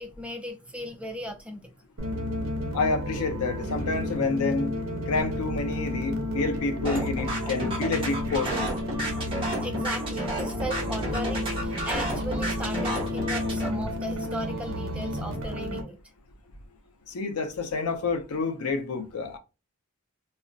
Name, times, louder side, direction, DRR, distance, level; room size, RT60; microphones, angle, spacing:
voice 1, 0.0-1.7 9.6-16.0, equal, 5° right, 0.3 m, -37 dB
sound 1, 2.0-15.8, left 1 dB, 70° right, 0.7 m, -31 dB
voice 2, 2.7-4.7 5.1-8.7 17.1-19.4, left 3 dB, 80° left, 0.6 m, -28 dB
sound 2, 6.8-13.7, right 1 dB, 25° right, 0.9 m, -32 dB
2.4 x 2.1 x 3.7 m
head